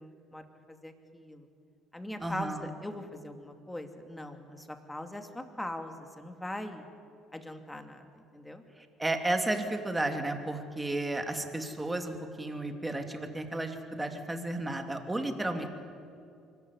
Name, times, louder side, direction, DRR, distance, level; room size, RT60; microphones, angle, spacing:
voice 1, 0.0-1.5 1.9-6.8 7.3-8.6 15.5-15.7, left 1 dB, 10° left, 6 dB, 2.7 m, -41 dB
voice 2, 2.2-2.6 9.0-15.7, right 2 dB, 15° right, 5 dB, 2.9 m, -33 dB
24.5 x 14.5 x 9.8 m, 2.5 s
hypercardioid pair, 65°, 0 cm